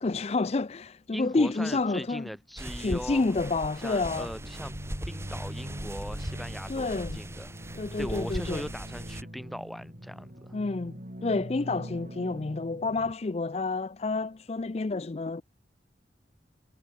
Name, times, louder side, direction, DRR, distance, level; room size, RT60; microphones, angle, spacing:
voice 1, 0.0-2.3 2.8-4.3 6.7-7.2 7.7-8.7 10.5-10.9 11.2-15.4, left 3 dB, 35° left, 0.4 m, -29 dB
voice 2, 1.1-3.3 3.8-4.7 5.0-7.5 8.0-10.6, equal, ahead, 3.3 m, -40 dB
sound 1, 2.6-9.2, right 1 dB, 15° right, 2.8 m, -39 dB
sound 2, 4.0-13.1, equal, 45° right, 5.6 m, -42 dB
head